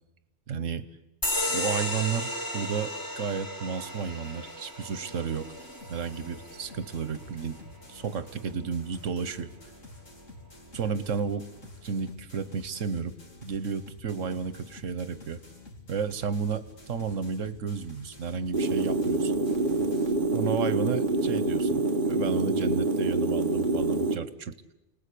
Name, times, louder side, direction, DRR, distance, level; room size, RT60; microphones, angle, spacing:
voice 1, 0.5-0.9 1.5-5.5 5.9-7.6 7.9-9.5 10.7-11.5 11.8-13.2 13.4-15.4 15.9-19.3 20.3-24.6, right 6 dB, 85° right, 14 dB, 1.4 m, -32 dB
sound 1, 1.2-8.3, left 1 dB, 15° left, 2.3 m, -34 dB
sound 2, 3.6-20.1, left 2 dB, 85° left, 3.3 m, -49 dB
sound 3, 18.5-24.2, right 3 dB, 45° right, 1.3 m, -26 dB
29.0 x 19.5 x 8.5 m, 0.99 s
omnidirectional pair, 1.3 m